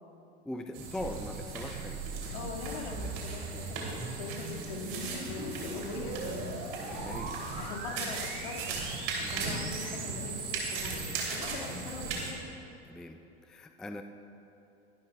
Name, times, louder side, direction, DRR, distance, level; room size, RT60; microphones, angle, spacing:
voice 1, 0.4-2.0 4.6-4.7 6.8-7.5 9.2-9.5 12.8-14.0, left 1 dB, ahead, 6 dB, 0.3 m, -41 dB
sound 1, 0.7-12.3, right 4 dB, 60° right, 3.1 m, -38 dB
sound 2, 1.4-11.3, right 4 dB, 35° right, 2.5 m, -42 dB
voice 2, 2.3-6.5 7.5-8.8 9.2-12.4, left 5 dB, 65° left, -2 dB, 2.1 m, -42 dB
sound 3, 5.0-7.2 7.6-7.8 8.0-8.1 8.8-8.9 9.6-9.7 10.4-10.5, left 3 dB, 50° left, 1.8 m, -46 dB
22.5 x 11.5 x 2.3 m, 3.0 s
hypercardioid pair, 90°, 34 cm